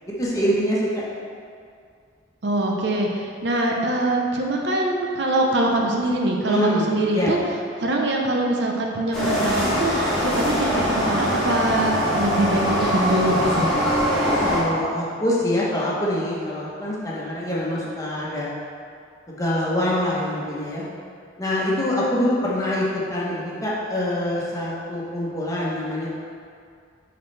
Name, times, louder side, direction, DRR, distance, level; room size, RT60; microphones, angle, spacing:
voice 1, 0.1-1.0 6.4-6.9 7.1-7.3 14.4-18.5 19.3-20.8 21.4-26.1, left 1 dB, 20° left, -6 dB, 1.2 m, -25 dB
voice 2, 2.4-7.4 7.8-13.7, right 1 dB, 65° right, 0 dB, 0.7 m, -23 dB
sound 1, 9.1-14.6, equal, 5° left, 1.6 m, -22 dB
10.0 x 4.0 x 3.3 m, 2.3 s
head